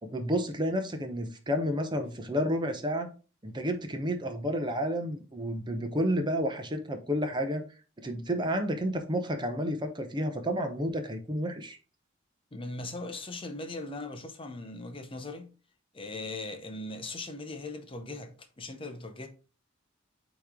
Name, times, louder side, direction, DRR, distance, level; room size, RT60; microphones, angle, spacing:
voice 1, 0.0-3.1 3.4-7.6 8.0-11.8, equal, 25° right, 0.8 m, -30 dB
voice 2, 12.5-15.5 15.9-19.3, left 2 dB, 25° left, 0.6 m, -39 dB
8.5 x 3.1 x 3.6 m
head